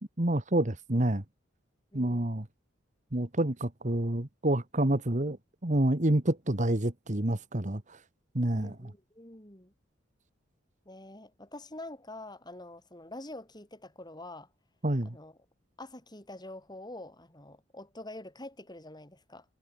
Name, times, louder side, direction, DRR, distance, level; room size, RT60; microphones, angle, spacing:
voice 1, 0.2-1.2 1.9-2.4 3.1-5.4 5.6-8.0 8.3-8.7 14.8-15.1, right 1 dB, 40° right, 1.8 m, -28 dB
voice 2, 1.9-2.4 8.5-9.7 10.8-14.5 15.0-15.4 15.8-19.5, left 1 dB, 20° left, 8.0 m, -46 dB
head